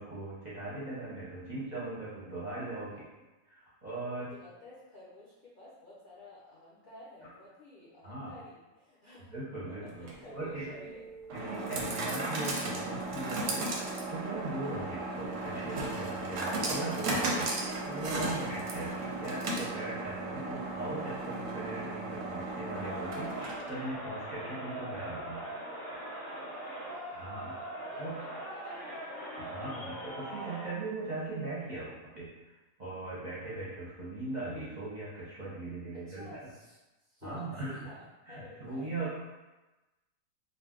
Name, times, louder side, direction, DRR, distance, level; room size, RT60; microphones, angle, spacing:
voice 1, 0.0-3.0 3.5-4.3 8.0-8.3 9.3-10.7 11.3-25.4 27.1-27.6 28.0-28.2 29.4-36.4 37.2-37.8 38.3-39.2, right 2 dB, 40° right, -9 dB, 0.7 m, -39 dB
voice 2, 2.9-3.2 3.8-9.3 9.6-11.0 18.3-18.6 26.0-29.3 35.9-38.0 38.3-39.1, left 2 dB, 60° left, -8 dB, 0.5 m, -52 dB
sound 1, 9.9-23.9, right 2 dB, 70° right, 0.8 m, -35 dB
Crowd, 22.7-30.8, right 1 dB, 35° left, 0.8 m, -41 dB
2.5 x 2.2 x 3.6 m, 1.1 s
omnidirectional pair, 1.6 m